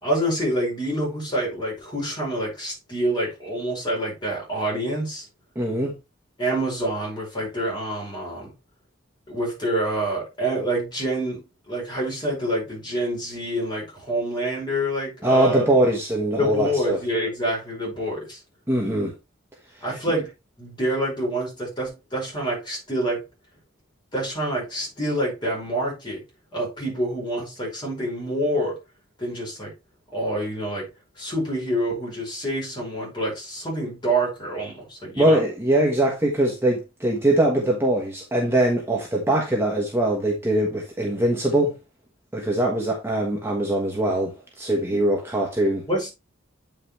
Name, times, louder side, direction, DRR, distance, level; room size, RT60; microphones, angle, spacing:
voice 1, 0.0-5.2 6.4-8.5 9.3-15.6 16.4-18.4 19.8-20.3 20.6-23.2 24.1-26.2 26.5-28.8 29.2-29.7 30.1-30.9 31.2-35.4 45.9-46.1, right 1 dB, 25° left, 5.4 m, -27 dB
voice 2, 5.5-5.9 15.2-17.0 18.7-19.1 35.2-41.7 42.3-45.9, right 1 dB, 10° right, 1.4 m, -22 dB
8.7 x 5.7 x 3.3 m
head